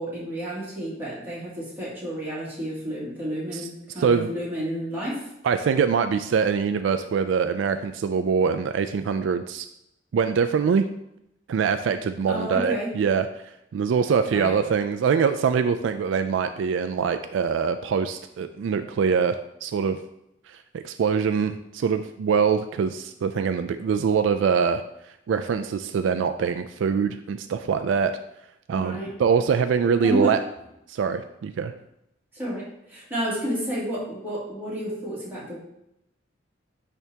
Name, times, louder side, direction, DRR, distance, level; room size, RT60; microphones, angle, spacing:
voice 1, 0.0-5.3 12.2-12.9 14.3-14.5 28.7-29.1 30.0-30.3 32.3-35.6, equal, 10° right, -8 dB, 2.4 m, -30 dB
voice 2, 4.0-4.3 5.4-9.7 10.1-10.9 11.5-13.3 13.7-19.3 19.6-20.0 20.5-24.8 25.3-28.1 28.7-30.4 30.9-31.7, right 6 dB, 70° right, 9 dB, 0.3 m, -23 dB
10.5 x 3.4 x 2.8 m, 0.82 s
head